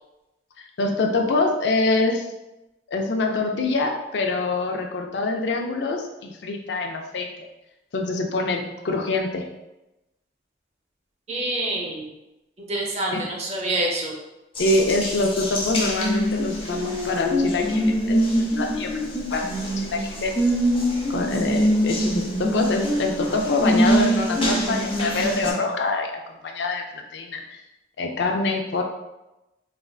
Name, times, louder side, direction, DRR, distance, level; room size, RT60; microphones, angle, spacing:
voice 1, 0.8-2.3 2.9-7.3 7.9-9.4 13.1-13.3 14.6-19.0 19.3-19.5 19.8-20.4 21.1-27.6 28.0-28.8, left 3 dB, 75° left, 3 dB, 0.4 m, -25 dB
voice 2, 11.3-12.1 12.6-14.2, right 1 dB, 35° right, -1 dB, 0.6 m, -27 dB
Water tap faucet, 14.5-25.5, equal, 30° left, 0.6 m, -24 dB
4.1 x 2.5 x 2.3 m, 0.96 s
head